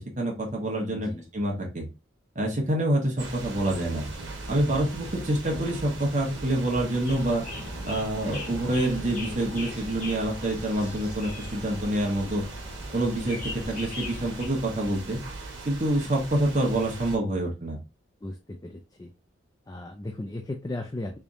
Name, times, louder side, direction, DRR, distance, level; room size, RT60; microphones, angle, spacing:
voice 1, 0.0-1.9 2.3-4.0 4.5-7.4 7.8-12.4 12.9-15.2 15.6-17.8, right 1 dB, 35° right, -1 dB, 1.1 m, -27 dB
voice 2, 0.9-1.3 12.2-12.5 18.2-19.1 19.7-21.2, left 2 dB, 20° left, 3 dB, 0.4 m, -36 dB
sound 1, 3.2-17.2, right 2 dB, 85° right, 1.3 m, -39 dB
sound 2, 7.0-14.5, left 2 dB, 40° left, 1.2 m, -41 dB
3.6 x 3.4 x 2.6 m, 0.30 s
head